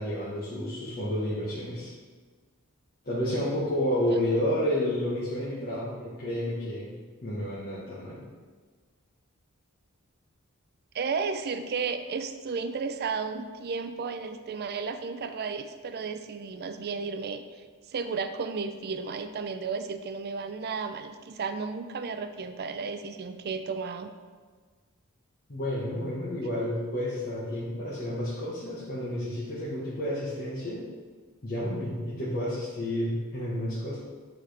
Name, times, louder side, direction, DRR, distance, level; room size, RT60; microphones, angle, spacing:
voice 1, 0.0-1.9 3.0-6.9 7.2-8.2 25.5-30.8 31.4-34.0, left 1 dB, 45° left, -8 dB, 1.2 m, -30 dB
voice 2, 10.9-17.4 17.9-24.1, right 5 dB, 50° right, 9 dB, 0.4 m, -33 dB
9.3 x 4.1 x 3.3 m, 1.5 s
head